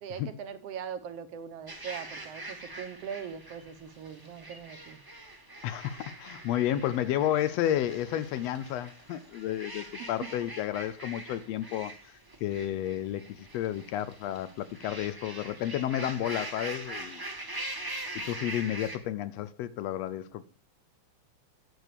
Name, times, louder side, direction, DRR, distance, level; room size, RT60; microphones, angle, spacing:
voice 1, 0.0-5.0, right 7 dB, 65° right, 1.8 m, -41 dB
sound 1, 1.7-19.0, right 1 dB, 20° right, 0.6 m, -43 dB
voice 2, 5.6-17.2 18.3-20.4, left 12 dB, 75° left, 1.6 m, -31 dB
9.1 x 8.2 x 6.8 m
omnidirectional pair, 3.4 m